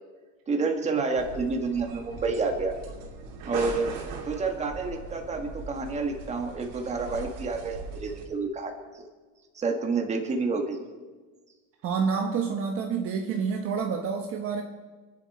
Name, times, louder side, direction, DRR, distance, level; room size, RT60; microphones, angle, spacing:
voice 1, 0.5-2.7 3.4-3.9 4.3-9.0 9.5-10.8, right 4 dB, 20° right, 4 dB, 1.7 m, -29 dB
sound 1, 1.1-8.2, right 3 dB, 75° right, 3.0 m, -39 dB
voice 2, 11.8-14.6, right 6 dB, 45° right, 3 dB, 1.1 m, -28 dB
27.5 x 11.0 x 4.3 m, 1.4 s
cardioid pair, 175°, 31 cm